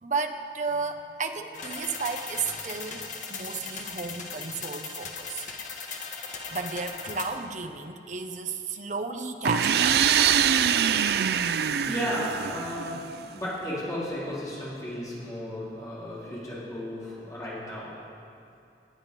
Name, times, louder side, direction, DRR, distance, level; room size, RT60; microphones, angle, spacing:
voice 1, 0.0-5.4 6.3-10.0, right 4 dB, 45° right, 6 dB, 0.8 m, -33 dB
sound 1, 1.5-7.3, left 5 dB, 45° left, 1.4 m, -38 dB
sound 2, 9.4-13.2, right 8 dB, 65° right, 0.4 m, -24 dB
voice 2, 10.8-11.5 11.9-18.0, left 1 dB, 20° left, -9 dB, 3.6 m, -34 dB
18.0 x 10.0 x 5.3 m, 2.6 s
head